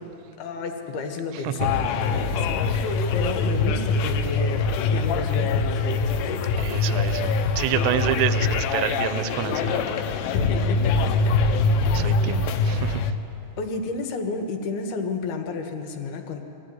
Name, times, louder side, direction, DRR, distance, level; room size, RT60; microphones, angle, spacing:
voice 1, 0.4-5.7 10.2-11.3 12.0-12.2 13.6-16.4, left 4 dB, 65° left, 4 dB, 3.1 m, -32 dB
voice 2, 1.3-1.7 6.6-10.3 11.9-13.1, right 12 dB, 80° right, 12 dB, 2.8 m, -29 dB
sound 1, 1.6-13.1, left 4 dB, 85° left, 3.5 m, -23 dB
23.0 x 15.5 x 9.4 m, 2.8 s
omnidirectional pair, 5.5 m